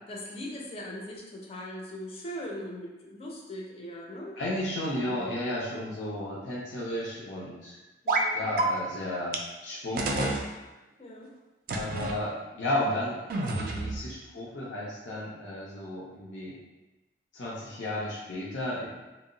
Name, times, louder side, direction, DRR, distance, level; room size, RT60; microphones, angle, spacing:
voice 1, 0.1-4.4 5.0-5.3 5.8-5.9 8.0-8.4 11.0-11.3, equal, 35° left, -2 dB, 0.5 m, -40 dB
voice 2, 4.4-7.8 8.3-10.4 11.7-13.3 13.5-16.6 17.3-18.9, left 1 dB, 75° left, -5 dB, 0.6 m, -33 dB
sound 1, 8.1-8.3 8.6-8.7 9.3-9.4 10.0-10.4 11.7-12.2 13.3-14.0, right 2 dB, 50° right, 0.3 m, -28 dB
2.2 x 2.0 x 3.7 m, 1.1 s
head